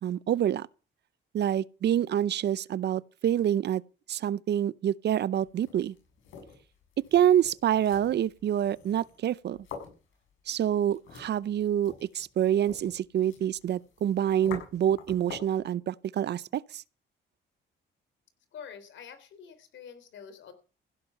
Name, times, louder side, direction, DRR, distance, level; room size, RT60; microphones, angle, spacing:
voice 1, 0.0-0.7 1.3-3.8 4.1-5.9 7.1-9.6 10.5-16.8, right 10 dB, 60° right, 0.6 m, -27 dB
sound 1, 5.4-15.6, left 6 dB, 90° left, 7.3 m, -48 dB
voice 2, 18.5-20.5, left 7 dB, 70° left, 3.7 m, -46 dB
16.0 x 11.0 x 5.7 m
cardioid pair, 90°, 20 cm